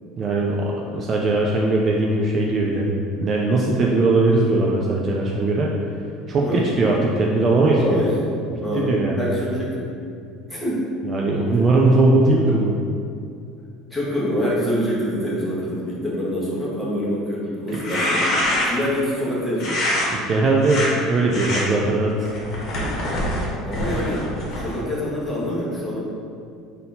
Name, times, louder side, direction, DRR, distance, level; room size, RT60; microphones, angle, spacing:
voice 1, 0.2-2.9 3.2-5.7 6.3-8.0 8.7-9.2 11.0-12.8 17.7-17.8 20.1-22.3, right 2 dB, 35° right, -2 dB, 0.4 m, -19 dB
voice 2, 7.7-9.9 10.5-10.9 11.5-11.6 13.9-18.3 18.6-19.8 23.6-26.0, equal, ahead, -8 dB, 1.2 m, -25 dB
sound 1, 17.7-18.9 19.6-20.1 20.6-20.9 21.3-21.6 22.2-24.8, left 1 dB, 50° left, 1.0 m, -25 dB
4.0 x 2.7 x 3.9 m, 2.4 s
supercardioid pair, 105°, 0 cm